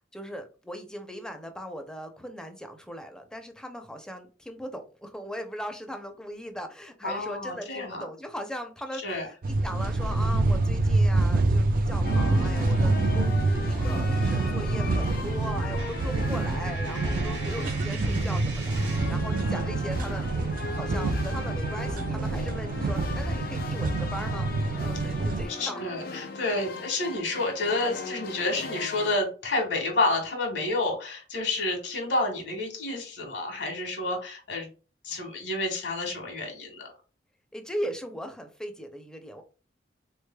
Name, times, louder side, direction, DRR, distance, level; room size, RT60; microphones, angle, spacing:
voice 1, 0.0-20.3 20.7-24.5 24.8-25.8 37.5-39.4, equal, 5° left, 6 dB, 0.5 m, -39 dB
voice 2, 7.0-8.0 9.0-9.3 17.9-18.4 25.6-34.7 35.0-36.9, left 2 dB, 75° left, 2 dB, 1.3 m, -29 dB
sound 1, 9.4-25.5, right 2 dB, 50° right, 0.4 m, -26 dB
sound 2, 12.0-29.2, left 4 dB, 55° left, 0.5 m, -38 dB
Coin (dropping), 15.7-19.3, right 4 dB, 70° right, 1.1 m, -42 dB
3.8 x 3.2 x 2.2 m, 0.35 s
head